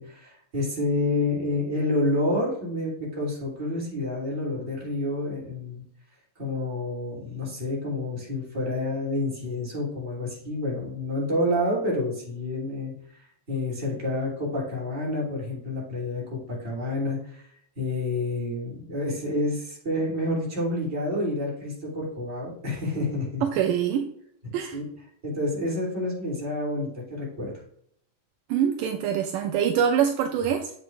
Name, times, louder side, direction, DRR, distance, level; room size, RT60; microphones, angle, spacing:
voice 1, 0.0-5.8 6.4-17.5 17.7-23.4 24.4-24.8 25.2-27.5, left 1 dB, 20° right, -5 dB, 2.9 m, -29 dB
voice 2, 23.4-24.1 24.5-24.8 28.5-30.7, right 8 dB, 80° right, 5 dB, 2.0 m, -24 dB
7.9 x 7.2 x 2.5 m, 0.69 s
omnidirectional pair, 4.2 m